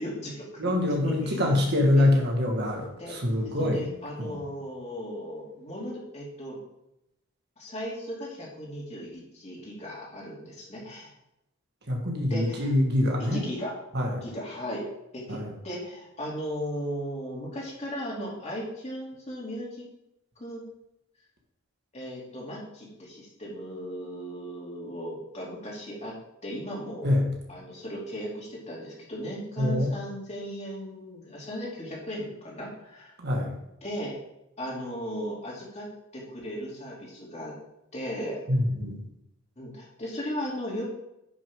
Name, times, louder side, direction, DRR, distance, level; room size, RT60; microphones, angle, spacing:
voice 1, 0.0-0.5 1.0-1.6 1.9-2.1 3.0-3.2 3.6-6.6 7.6-11.1 12.3-12.7 13.2-13.7 14.2-14.8 15.1-19.8 20.4-20.6 21.9-26.1 26.4-27.1 27.5-33.1 33.8-34.2 34.6-35.9 36.1-37.5 37.9-38.4 39.6-40.8, equal, 35° left, -4 dB, 2.8 m, -36 dB
voice 2, 0.6-3.9 4.2-4.4 11.9-13.4 13.9-14.2 15.3-15.5 27.0-27.3 29.6-30.0 33.2-33.6 38.5-39.1, left 1 dB, 55° right, 1 dB, 1.6 m, -25 dB
10.5 x 6.2 x 3.6 m, 0.85 s
head